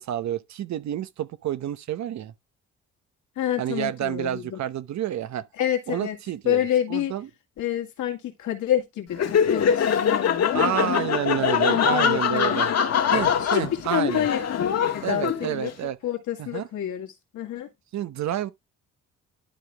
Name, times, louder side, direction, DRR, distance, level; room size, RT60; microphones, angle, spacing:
voice 1, 0.0-2.3 3.6-5.4 5.9-7.3 10.5-12.7 13.1-14.3 15.0-16.0 16.4-16.7 17.9-18.5, right 11 dB, 65° right, 0.9 m, -29 dB
voice 2, 3.4-4.6 5.6-6.2 6.5-7.1 7.6-11.3 11.7-12.6 13.4-13.6 13.9-15.7 16.0-17.7, left 11 dB, 75° left, 2.1 m, -28 dB
Laughter, 9.1-15.7, left 7 dB, 55° left, 1.5 m, -23 dB
11.5 x 4.0 x 3.4 m
cardioid pair, 90°, 30 cm